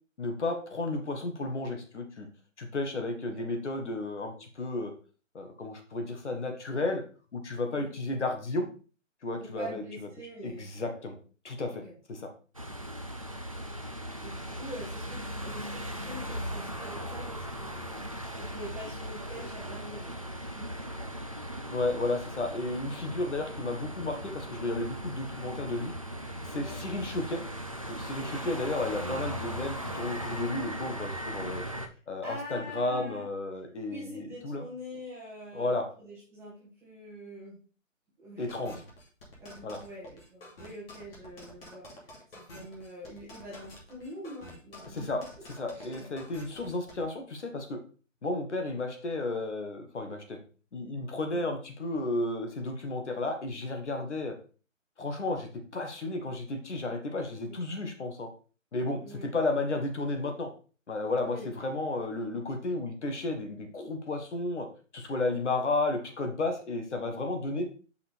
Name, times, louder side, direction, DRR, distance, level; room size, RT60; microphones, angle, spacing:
voice 1, 0.2-2.3 2.6-4.9 5.3-7.0 7.3-8.7 9.2-9.8 10.4-11.2 11.4-11.8 12.1-12.3 21.7-25.9 26.4-27.4 27.9-31.6 32.1-34.6 35.5-35.8 38.4-38.8 39.6-39.8 44.9-45.2 45.6-47.8 48.2-50.4 50.7-54.3 55.0-58.3 58.7-60.5 60.9-64.7 64.9-67.7, left 2 dB, 60° left, 5 dB, 1.6 m, -33 dB
voice 2, 9.4-11.0 11.8-11.9 14.2-21.2 26.5-26.8 28.2-28.6 31.9-33.3 33.9-37.6 38.2-38.5 39.4-45.3 45.7-46.1 51.3-51.4 57.5-57.7 59.0-59.3 61.2-61.5, equal, 5° right, -6 dB, 1.6 m, -45 dB
sound 1, 12.5-31.9, equal, 30° right, 0.4 m, -38 dB
sound 2, 38.5-47.0, left 1 dB, 45° left, 2.8 m, -49 dB
6.5 x 5.7 x 3.4 m, 0.37 s
figure-of-eight pair, 155°, 39 cm